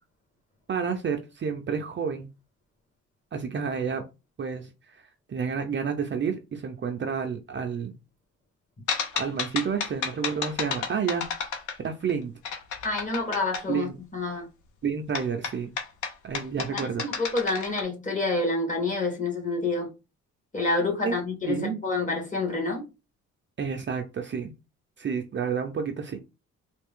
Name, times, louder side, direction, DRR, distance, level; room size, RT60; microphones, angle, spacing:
voice 1, 0.7-2.3 3.3-4.0 4.4-5.0 5.3-7.9 9.1-11.2 11.8-12.3 13.7-14.0 14.8-15.7 16.2-17.3 21.0-21.1 21.5-21.8 23.6-24.5 25.0-26.2, right 6 dB, 40° right, 0.6 m, -30 dB
sound 1, 8.9-12.1 12.4-13.6 15.1-17.8, left 6 dB, 75° left, 0.9 m, -31 dB
voice 2, 12.8-14.5 16.5-19.9 20.5-22.8, left 3 dB, 25° left, 1.7 m, -28 dB
3.3 x 2.4 x 3.6 m
cardioid pair, 90°, 30 cm